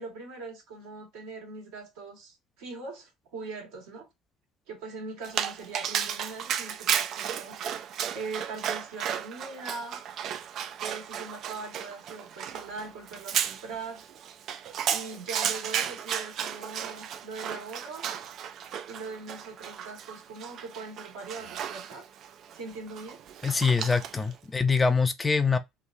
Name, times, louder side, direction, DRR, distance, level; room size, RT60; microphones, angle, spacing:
voice 1, 0.0-4.1 4.7-7.6 8.1-10.0 10.8-14.0 14.9-18.1 18.9-22.1 22.5-23.2, right 4 dB, 80° right, 1.5 m, -41 dB
Dog, 5.2-24.3, right 9 dB, 60° right, 0.4 m, -34 dB
voice 2, 23.4-25.6, left 4 dB, 20° left, 0.5 m, -24 dB
3.1 x 2.4 x 2.6 m
supercardioid pair, 80°, 0 cm